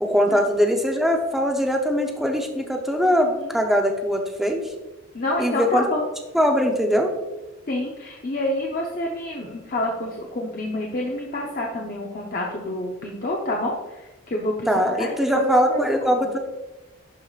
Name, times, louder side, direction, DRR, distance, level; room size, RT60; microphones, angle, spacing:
voice 1, 0.0-4.7 5.4-5.9 6.3-7.1 14.7-16.4, equal, ahead, 2 dB, 0.7 m, -21 dB
voice 2, 3.2-3.5 5.1-6.0 7.7-14.7 14.9-16.3, left 1 dB, 40° left, -1 dB, 0.7 m, -28 dB
11.5 x 4.8 x 2.4 m, 1.1 s
head